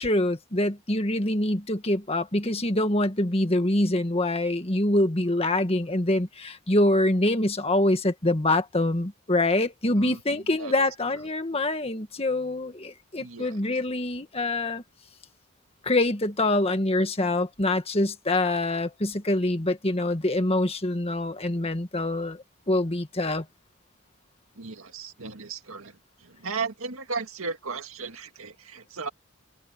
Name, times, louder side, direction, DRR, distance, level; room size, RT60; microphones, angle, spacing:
voice 1, 0.0-14.8 15.8-23.5, left 1 dB, 30° left, 1.8 m, -25 dB
voice 2, 10.0-10.7 13.2-13.6 24.6-29.1, right 4 dB, 75° right, 2.0 m, -36 dB
head